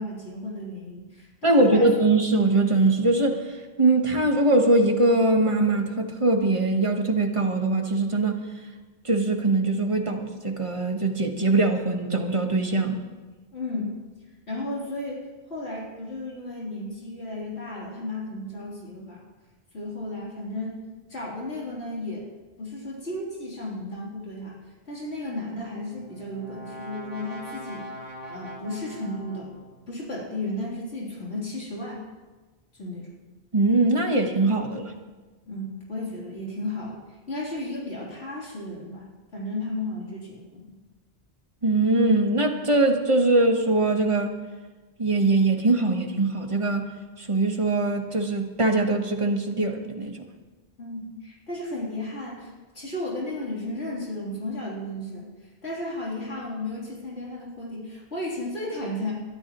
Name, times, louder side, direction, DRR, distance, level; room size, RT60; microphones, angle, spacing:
voice 1, 0.0-1.9 13.5-14.0 14.5-19.2 19.7-20.8 21.1-22.3 22.6-27.9 28.3-29.5 29.9-32.0 32.7-33.1 35.5-40.8 50.8-59.1, left 1 dB, 85° left, -5 dB, 3.8 m, -34 dB
voice 2, 1.4-8.4 9.0-13.0 33.5-34.9 41.6-44.4 45.0-46.9 47.2-50.2, right 2 dB, 30° right, 3 dB, 1.4 m, -22 dB
Brass instrument, 25.6-29.8, equal, 80° right, 2.7 m, -41 dB
22.5 x 13.0 x 3.1 m, 1.3 s
omnidirectional pair, 1.1 m